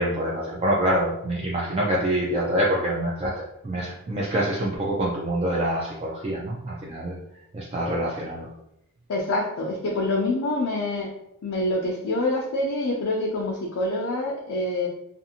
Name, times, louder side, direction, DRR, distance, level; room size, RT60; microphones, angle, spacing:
voice 1, 0.0-7.2 7.5-8.5, right 1 dB, 30° right, -5 dB, 0.3 m, -26 dB
voice 2, 9.1-11.1 11.4-14.9, left 2 dB, 85° left, -2 dB, 0.4 m, -26 dB
2.5 x 2.4 x 2.7 m, 0.82 s
head